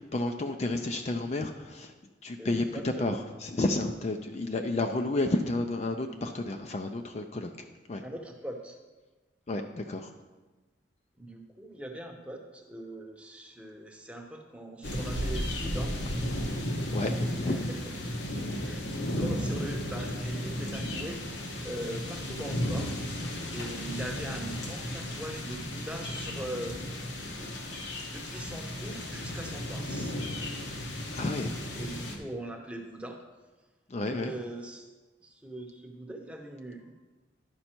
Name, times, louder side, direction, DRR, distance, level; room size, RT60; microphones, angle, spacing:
voice 1, 0.0-1.9 2.2-8.0 9.5-10.1 16.9-17.7 31.1-31.6 33.9-34.3, left 2 dB, 35° left, 5 dB, 0.4 m, -31 dB
voice 2, 2.4-3.2 8.0-8.8 11.2-15.9 17.2-17.8 18.6-23.1 23.5-26.8 27.2-27.6 28.1-30.1 31.7-33.2 34.1-34.9 35.2-36.9, right 1 dB, 5° right, 2 dB, 0.8 m, -41 dB
sound 1, 14.8-32.2, equal, 75° left, 1.1 m, -34 dB
11.0 x 5.3 x 4.4 m, 1.2 s
head